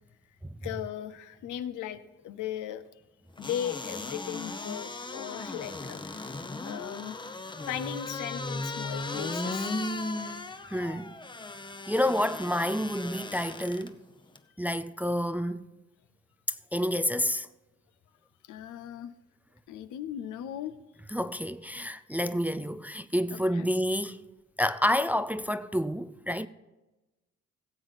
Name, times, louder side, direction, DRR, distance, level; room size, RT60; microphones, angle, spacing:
voice 1, 0.6-2.8 3.4-6.3 6.6-7.2 7.6-9.7 18.4-19.1 19.7-20.8 23.3-23.7, left 10 dB, 80° left, 0.7 m, -37 dB
sound 1, 3.4-13.9 14.4-14.5, left 2 dB, 15° left, 0.7 m, -37 dB
voice 2, 10.7-11.2 11.9-14.0 14.6-15.6 16.7-17.5 21.1-24.3 24.6-26.5, equal, 5° right, 0.3 m, -29 dB
17.0 x 7.9 x 4.1 m
cardioid pair, 90°, 30 cm